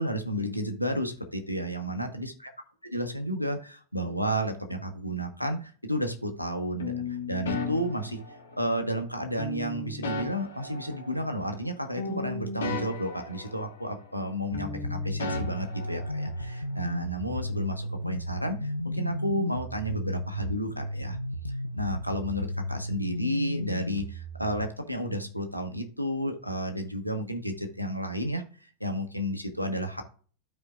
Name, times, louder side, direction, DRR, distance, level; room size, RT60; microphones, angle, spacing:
voice 1, 0.0-2.5 2.9-8.2 8.6-21.2 21.7-30.0, equal, 90° right, 6 dB, 1.0 m, -32 dB
sound 1, 6.8-8.8 9.4-11.7 12.0-14.3 14.5-16.6, left 4 dB, 65° left, 1.4 m, -36 dB
sound 2, 14.5-24.6, left 1 dB, 85° left, 0.6 m, -34 dB
12.5 x 4.5 x 2.3 m, 0.42 s
figure-of-eight pair, 90°, 0 cm